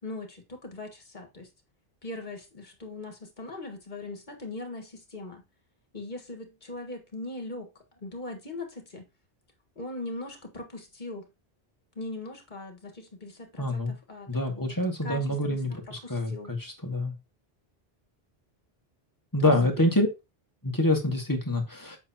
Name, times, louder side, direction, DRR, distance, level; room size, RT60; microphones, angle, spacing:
voice 1, 0.0-1.5 2.0-5.4 5.9-7.7 8.0-9.0 9.7-11.3 11.9-14.8 15.0-16.5 19.4-19.9, left 2 dB, 50° left, 1.8 m, -40 dB
voice 2, 13.6-13.9 14.3-17.1 19.3-20.1 20.6-22.0, left 1 dB, 20° left, 1.6 m, -26 dB
7.9 x 5.8 x 2.9 m
omnidirectional pair, 1.0 m